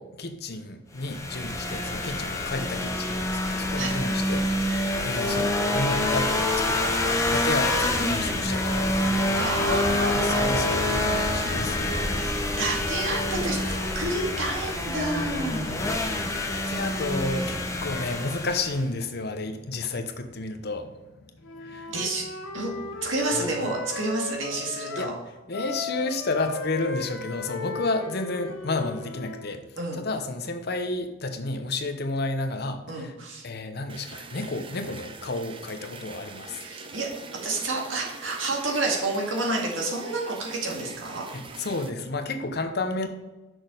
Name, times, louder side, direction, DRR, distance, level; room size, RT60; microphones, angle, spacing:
voice 1, 0.0-12.6 16.5-21.9 23.3-23.5 25.0-25.1 25.5-33.1 33.4-36.6 41.6-43.1, left 2 dB, 55° left, 7 dB, 0.8 m, -32 dB
sound 1, 1.0-18.8, left 1 dB, 15° left, 0.8 m, -26 dB
voice 2, 9.3-10.5 12.6-13.6 13.9-15.7 21.9-22.2 22.5-22.7 23.0-25.1 29.8-30.0 32.9-33.4 36.6-37.1 37.4-41.3, right 2 dB, 80° right, -1 dB, 2.0 m, -29 dB
Wind instrument woodwind instrument, 21.4-25.2 25.5-29.5, left 4 dB, 85° left, 1.2 m, -36 dB
sound 2, 33.9-41.9, right 4 dB, 25° right, 0.6 m, -43 dB
6.3 x 6.2 x 5.1 m, 1.1 s
head